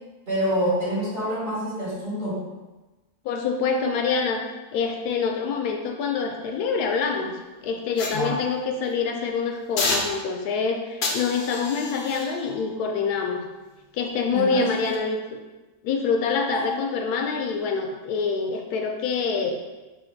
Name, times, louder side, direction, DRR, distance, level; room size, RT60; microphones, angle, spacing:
voice 1, 0.3-2.4 8.1-8.4 14.3-14.9 16.5-16.7, equal, 40° right, -8 dB, 1.4 m, -27 dB
voice 2, 3.2-4.4 4.7-7.4 7.6-13.4 13.9-15.2 15.8-19.6, left 5 dB, 80° left, 2 dB, 1.1 m, -26 dB
sound 1, 8.0-9.0 9.8-10.6 11.0-14.2 14.8-15.0, left 3 dB, 60° left, 0.7 m, -32 dB
3.1 x 2.8 x 4.4 m, 1.1 s
omnidirectional pair, 1.6 m